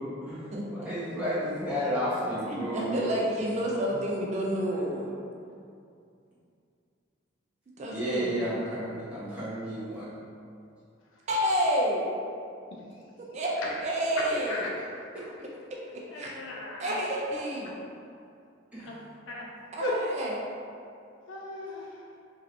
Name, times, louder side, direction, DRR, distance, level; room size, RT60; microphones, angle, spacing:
voice 1, 0.0-3.0 7.9-10.1 14.3-14.4 18.7-18.9, equal, 5° right, -11 dB, 0.9 m, -32 dB
voice 2, 2.5-5.1 7.8-8.4 11.3-12.1 13.2-13.5 13.8-14.6 15.7-15.8 16.1-16.3 16.8-17.7 19.7-20.4, equal, 35° right, -3 dB, 0.3 m, -29 dB
voice 3, 16.1-16.9 18.8-18.9 19.3-19.4 19.8-20.0 21.3-22.0, left 2 dB, 80° left, -3 dB, 0.6 m, -36 dB
3.1 x 2.7 x 2.5 m, 2.4 s
head